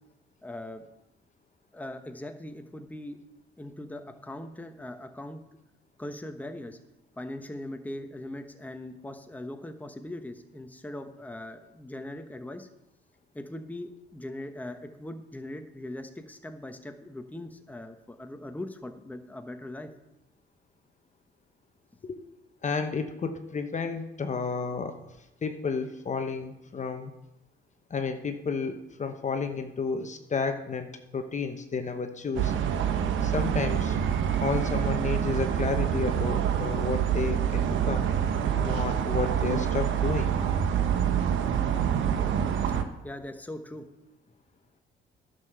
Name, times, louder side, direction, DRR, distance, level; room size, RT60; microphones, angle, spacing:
voice 1, 0.4-0.8 1.7-3.2 3.6-5.4 6.0-6.8 7.2-12.7 13.3-19.9 43.0-43.9, left 1 dB, 10° left, 6 dB, 1.1 m, -40 dB
voice 2, 22.6-25.0 25.4-27.1 27.9-32.5 33.2-34.0 34.4-38.0 38.5-40.3, left 5 dB, 35° left, 6 dB, 1.0 m, -31 dB
sound 1, 32.4-42.8, right 9 dB, 80° right, 1.0 m, -26 dB
11.0 x 6.8 x 6.8 m, 0.93 s
cardioid pair, 90°, 20 cm